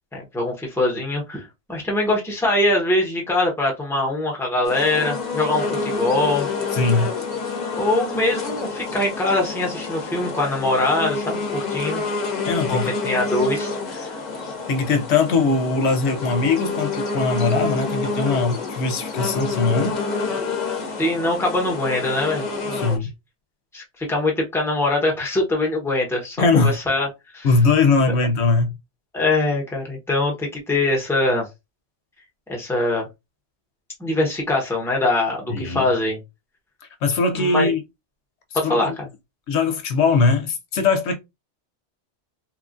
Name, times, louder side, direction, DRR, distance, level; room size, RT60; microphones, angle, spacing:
voice 1, 0.1-6.5 7.8-12.0 12.7-14.1 21.0-23.0 23.7-27.1 27.3-27.5 29.1-31.5 32.5-33.1 34.0-36.2 37.3-37.7 38.5-39.1, left 2 dB, ahead, 0.8 m, -23 dB
sound 1, 4.7-23.0, left 4 dB, 45° left, 0.8 m, -28 dB
voice 2, 6.7-7.1 12.5-12.9 14.7-20.0 22.7-23.1 26.4-26.8 27.4-28.8 35.5-35.9 37.0-37.8 38.6-38.9 39.5-41.2, left 4 dB, 75° left, 0.8 m, -20 dB
3.0 x 2.3 x 2.4 m
omnidirectional pair, 1.2 m